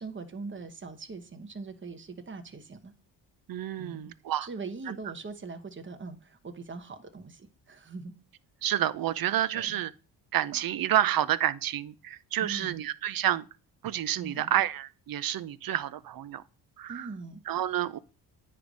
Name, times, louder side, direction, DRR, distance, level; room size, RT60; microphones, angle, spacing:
voice 1, 0.0-2.9 3.8-4.1 4.4-8.1 9.5-9.8 12.4-12.8 14.2-14.5 16.9-17.4, right 4 dB, 25° right, 1.1 m, -41 dB
voice 2, 3.5-4.5 4.9-5.0 8.6-9.9 10.3-13.4 13.8-16.4 16.8-17.1 17.5-18.0, right 12 dB, 55° right, 0.6 m, -29 dB
9.6 x 3.3 x 5.2 m
cardioid pair, 85°, 42 cm